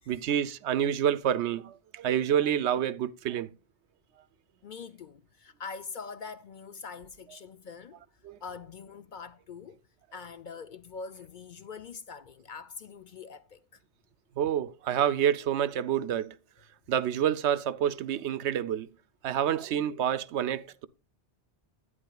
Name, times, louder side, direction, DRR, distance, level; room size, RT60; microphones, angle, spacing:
voice 1, 0.1-3.5 8.2-8.4 14.4-16.4 16.9-18.9 19.2-20.9, right 9 dB, 75° right, 0.9 m, -28 dB
voice 2, 4.6-9.8 10.1-13.8, left 5 dB, 55° left, 0.6 m, -44 dB
11.0 x 9.6 x 2.3 m
omnidirectional pair, 1.2 m